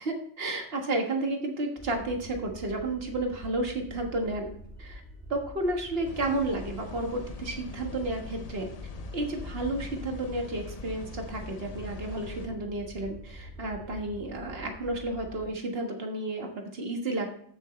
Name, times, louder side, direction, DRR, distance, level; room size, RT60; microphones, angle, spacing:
voice 1, 0.0-5.0 5.3-8.7 9.1-17.3, right 2 dB, 55° right, 2 dB, 1.8 m, -32 dB
sound 1, 1.8-15.5, right 1 dB, 10° left, 2.9 m, -46 dB
sound 2, 6.0-12.5, left 5 dB, 45° left, 0.6 m, -43 dB
15.0 x 6.4 x 3.2 m, 0.65 s
omnidirectional pair, 1.2 m